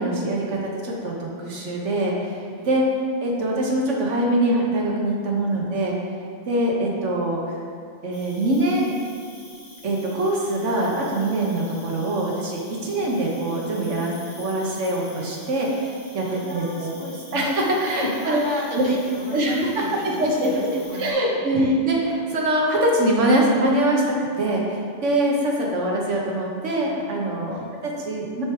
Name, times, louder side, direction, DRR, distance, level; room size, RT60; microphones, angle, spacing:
voice 1, 0.0-2.8 3.2-5.9 6.5-7.6 8.0-8.9 9.8-16.9 17.3-18.4 18.8-18.9 19.3-19.7 20.0-28.4, right 1 dB, 75° right, -2 dB, 1.4 m, -23 dB
voice 2, 2.6-3.1 5.5-5.7 12.8-13.0 16.2-17.5 18.0-21.7 27.5-27.7, left 2 dB, 35° left, -4 dB, 0.4 m, -35 dB
Cricket, 8.1-21.1, left 1 dB, 60° left, 1.9 m, -47 dB
9.2 x 3.2 x 4.5 m, 2.2 s
omnidirectional pair, 1.2 m